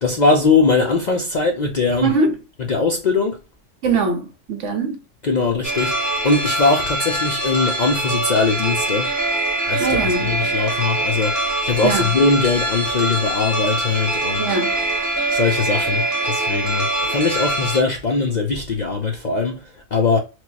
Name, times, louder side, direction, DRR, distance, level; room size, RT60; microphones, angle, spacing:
voice 1, 0.0-2.1 2.7-3.4 5.2-9.1 9.7-14.6 15.3-20.2, left 4 dB, 50° left, 0.5 m, -21 dB
voice 2, 2.0-2.3 3.8-5.0 9.8-10.3 11.8-12.1 14.4-14.9, right 3 dB, 70° right, 1.1 m, -21 dB
sound 1, 5.6-17.8, right 1 dB, 15° right, 1.0 m, -23 dB
4.5 x 2.1 x 2.7 m
omnidirectional pair, 1.3 m